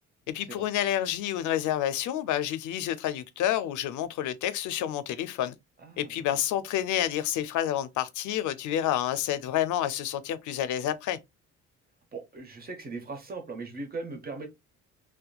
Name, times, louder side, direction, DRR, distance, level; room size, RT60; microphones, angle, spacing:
voice 1, 0.3-5.6 6.0-11.2, left 11 dB, 80° left, 0.5 m, -29 dB
voice 2, 5.8-6.4 12.1-14.5, right 3 dB, 30° right, 0.9 m, -39 dB
2.8 x 2.2 x 2.2 m
cardioid pair, 90°, 30 cm